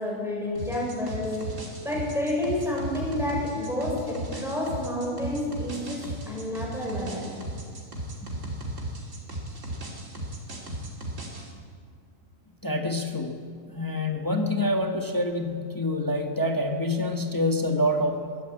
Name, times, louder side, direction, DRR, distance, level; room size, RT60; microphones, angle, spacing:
voice 1, 0.0-1.4 1.8-7.3, left 1 dB, ahead, -4 dB, 6.9 m, -29 dB
sound 1, 0.6-11.5, right 1 dB, 70° right, 3.6 m, -36 dB
voice 2, 12.6-18.3, left 1 dB, 15° left, 3 dB, 1.3 m, -27 dB
22.5 x 16.0 x 8.7 m, 2.2 s
omnidirectional pair, 1.4 m